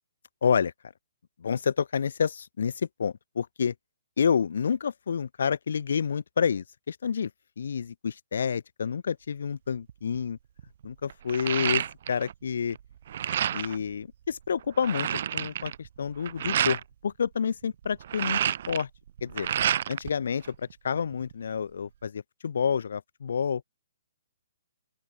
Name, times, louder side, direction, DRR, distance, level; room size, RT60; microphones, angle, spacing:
voice 1, 0.4-0.7 1.4-3.7 4.2-7.3 7.6-10.4 10.8-11.8 12.1-12.8 13.5-15.1 15.3-18.9 19.2-19.5 19.9-23.6, left 6 dB, 70° left, 2.9 m, -29 dB
sound 1, 9.9-10.2 10.6-12.3 12.6-13.8 14.3-14.4 14.6-16.8 17.8-20.1 20.4-21.3, right 10 dB, 55° right, 1.3 m, -29 dB
open air
hypercardioid pair, 135°, 0 cm